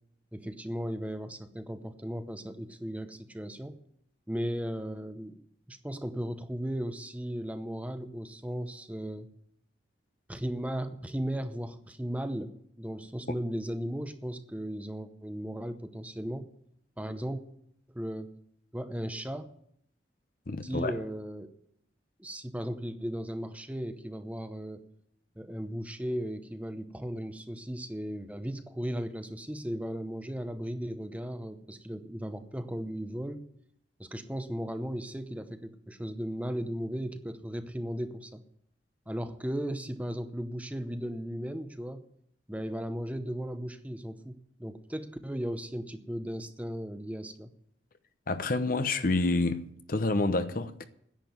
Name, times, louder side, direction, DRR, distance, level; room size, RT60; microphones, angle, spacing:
voice 1, 0.3-3.8 4.3-9.3 10.3-16.5 17.0-17.4 17.9-18.3 18.7-19.5 20.6-21.5 22.2-24.9 25.4-33.5 34.0-38.4 39.1-42.0 42.5-47.5, equal, 10° right, 0.8 m, -36 dB
voice 2, 20.5-21.0 48.3-50.9, left 2 dB, 50° left, 0.8 m, -28 dB
10.5 x 7.6 x 9.3 m
head